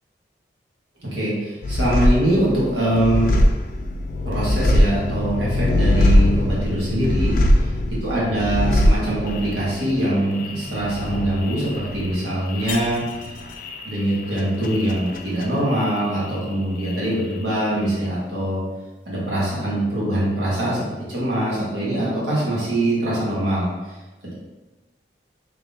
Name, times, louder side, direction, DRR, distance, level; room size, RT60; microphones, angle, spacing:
voice 1, 1.0-3.4 4.2-7.4 8.0-13.1 13.8-18.6 19.0-23.7, right 1 dB, 85° right, -7 dB, 1.4 m, -23 dB
sound 1, 1.6-16.5 16.8-17.6, left 1 dB, 50° left, 0.3 m, -22 dB
3.6 x 3.4 x 2.6 m, 1.2 s
head